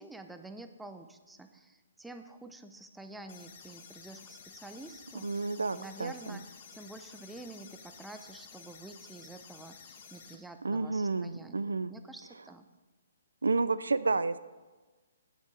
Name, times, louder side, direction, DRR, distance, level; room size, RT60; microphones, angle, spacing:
voice 1, 0.0-5.4 5.7-12.7, right 2 dB, 5° right, 7 dB, 0.6 m, -48 dB
sound 1, 3.3-10.3, left 6 dB, 40° left, 1.4 m, -52 dB
voice 2, 5.2-6.4 10.6-11.9 13.4-14.4, right 3 dB, 85° right, 15 dB, 0.4 m, -30 dB
9.1 x 8.2 x 4.8 m, 1.3 s
hypercardioid pair, 140°, 0 cm